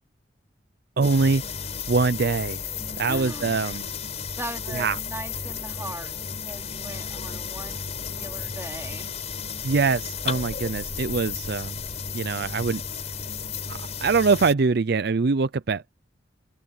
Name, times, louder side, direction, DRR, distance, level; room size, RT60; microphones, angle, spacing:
sound 1, 1.0-14.5, left 6 dB, 35° left, 4.6 m, -33 dB
voice 1, 1.0-1.4 1.9-2.6 3.0-3.8 4.7-5.0 9.6-11.8 12.1-12.8 13.7-15.8, right 4 dB, 60° right, 0.5 m, -23 dB
voice 2, 3.1-3.8 4.4-9.2, right 1 dB, 15° right, 3.9 m, -39 dB
head